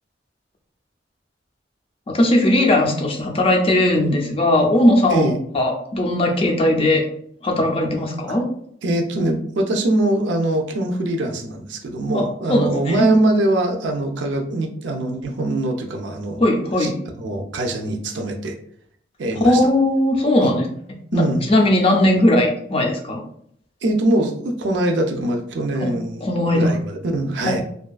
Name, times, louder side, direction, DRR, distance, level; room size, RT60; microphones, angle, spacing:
voice 1, 2.1-7.0 7.4-8.5 12.1-12.2 12.5-13.1 16.4-17.0 19.4-20.7 21.1-21.2 21.5-23.2 25.8-25.9 26.2-26.7 27.5-27.6, left 1 dB, 30° left, 2 dB, 0.4 m, -18 dB
voice 2, 8.8-16.4 16.8-18.5 19.2-19.6 20.4-20.5 21.1-21.4 23.8-26.2 26.5-27.6, right 1 dB, 70° right, 4 dB, 0.4 m, -22 dB
2.5 x 2.3 x 2.3 m, 0.66 s
head